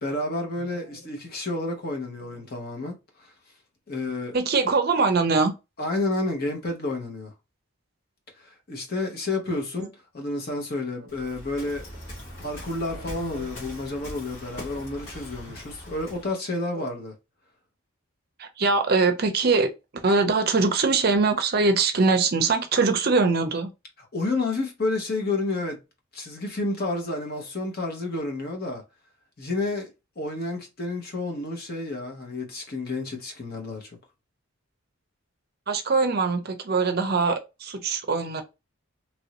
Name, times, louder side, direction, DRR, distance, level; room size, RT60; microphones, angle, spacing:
voice 1, 0.0-2.9 3.9-4.4 5.8-7.3 8.4-11.9 12.4-17.1 24.0-25.8 26.1-28.8 29.4-29.9 30.2-33.9, left 2 dB, 45° left, 0.9 m, -30 dB
voice 2, 4.3-5.5 13.2-13.5 18.4-23.7 35.7-38.4, right 4 dB, 45° right, 0.5 m, -22 dB
Waves surf, 11.1-16.3, equal, 75° left, 1.6 m, -41 dB
3.1 x 2.6 x 2.9 m
head